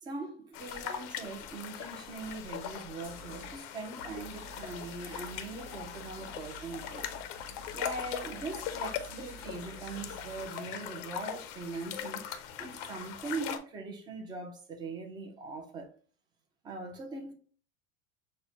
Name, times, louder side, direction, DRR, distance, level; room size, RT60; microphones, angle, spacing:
voice 1, 0.0-7.1 7.7-12.2 12.6-15.9 16.6-17.3, right 3 dB, 15° right, 0.5 m, -41 dB
sound 1, 0.5-13.6, left 9 dB, 50° left, 0.5 m, -40 dB
sound 2, 3.0-3.6 4.0-10.4, right 5 dB, 50° right, 0.9 m, -51 dB
5.7 x 2.1 x 2.7 m
cardioid pair, 165°, 30 cm